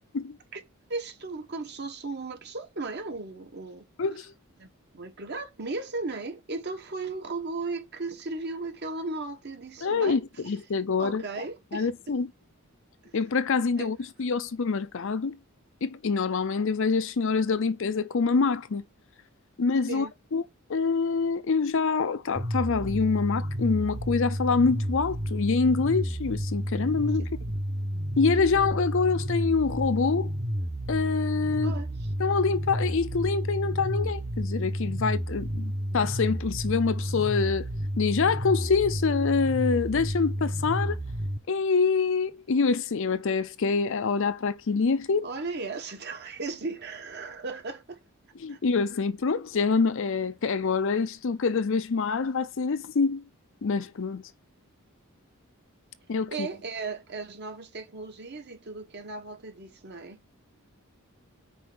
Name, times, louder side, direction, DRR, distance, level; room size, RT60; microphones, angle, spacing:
voice 1, 0.9-3.9 4.6-4.7 4.9-10.2 11.0-11.9 13.0-13.1 13.8-13.9 14.2-14.3 19.9-20.1 27.2-27.3 31.6-32.1 45.2-48.0 48.5-48.6 56.3-60.2, right 3 dB, 50° right, 1.2 m, -36 dB
voice 2, 4.0-4.3 9.8-11.2 11.7-12.3 13.1-15.4 15.8-18.8 19.6-20.4 20.7-27.3 28.2-30.3 30.9-31.8 32.2-37.7 38.0-41.0 41.5-45.3 48.4-53.2 53.6-54.2 56.1-56.5, left 4 dB, 60° left, 0.5 m, -26 dB
sound 1, 22.4-41.4, equal, 30° right, 0.9 m, -31 dB
5.5 x 4.4 x 6.1 m
head